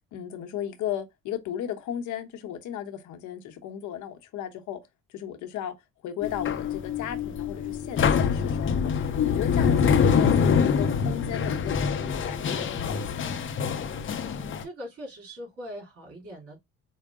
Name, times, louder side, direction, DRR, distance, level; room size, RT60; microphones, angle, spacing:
voice 1, 0.1-4.8 5.1-5.7 6.0-8.9 9.3-13.4, left 10 dB, 75° left, 0.9 m, -35 dB
sound 1, 6.2-14.6, left 6 dB, 40° left, 0.6 m, -25 dB
voice 2, 14.2-16.6, equal, 50° right, 2.7 m, -41 dB
4.6 x 2.1 x 3.5 m
cardioid pair, 100°, 30 cm